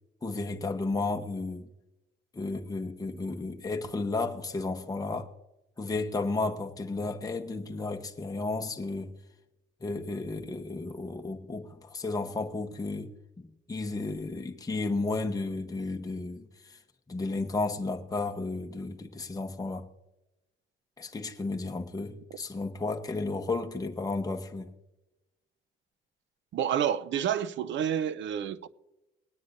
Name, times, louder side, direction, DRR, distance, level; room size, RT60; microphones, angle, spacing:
voice 1, 0.2-1.7 2.3-5.3 5.8-9.1 9.8-13.1 13.4-16.8 17.1-19.9 21.0-24.7, left 3 dB, 20° left, 1.0 m, -33 dB
voice 2, 26.5-28.7, right 9 dB, 70° right, 0.6 m, -29 dB
20.5 x 9.7 x 2.6 m
cardioid pair, 90°, 20 cm